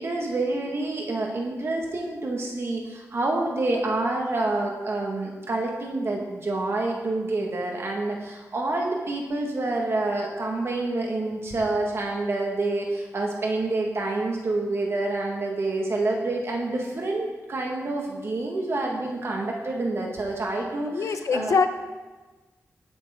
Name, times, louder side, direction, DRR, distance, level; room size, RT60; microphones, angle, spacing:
voice 1, 0.0-21.7, right 2 dB, 50° right, 0 dB, 1.7 m, -28 dB
voice 2, 20.9-21.7, left 5 dB, 75° left, 8 dB, 1.0 m, -23 dB
19.0 x 9.1 x 3.8 m, 1.2 s
wide cardioid pair, 120°, 5 cm